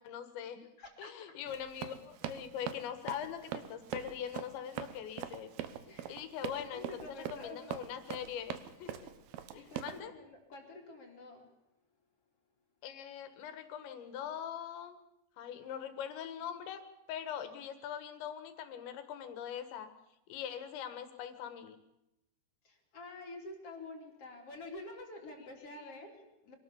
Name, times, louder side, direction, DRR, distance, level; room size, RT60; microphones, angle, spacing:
voice 1, 0.0-0.7 1.0-5.5 6.1-9.1 9.5-10.1 12.8-15.0 15.4-16.8 17.1-19.9 20.3-21.8 25.4-25.5 25.7-26.0, left 9 dB, 80° left, 10 dB, 3.9 m, -42 dB
voice 2, 0.8-1.4 5.9-6.3 6.5-7.7 9.5-11.5 22.6-26.5, left 2 dB, 35° left, 2 dB, 3.7 m, -48 dB
Run, 1.5-10.0, right 11 dB, 70° right, 2.7 m, -42 dB
24.5 x 18.5 x 7.1 m, 0.87 s
omnidirectional pair, 5.1 m